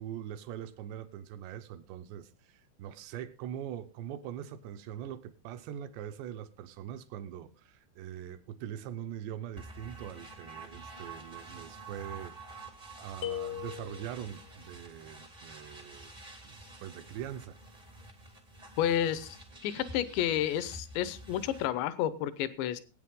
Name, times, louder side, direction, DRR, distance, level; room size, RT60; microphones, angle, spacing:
voice 1, 0.0-12.4 13.0-16.2 16.4-17.6, right 10 dB, 75° right, 2.8 m, -42 dB
sound 1, 9.6-21.7, right 2 dB, 45° right, 0.5 m, -48 dB
sound 2, 13.2-14.4, left 11 dB, 45° left, 0.7 m, -38 dB
voice 2, 18.8-19.4 19.6-22.8, left 11 dB, 75° left, 3.1 m, -30 dB
22.0 x 9.1 x 3.7 m
omnidirectional pair, 5.4 m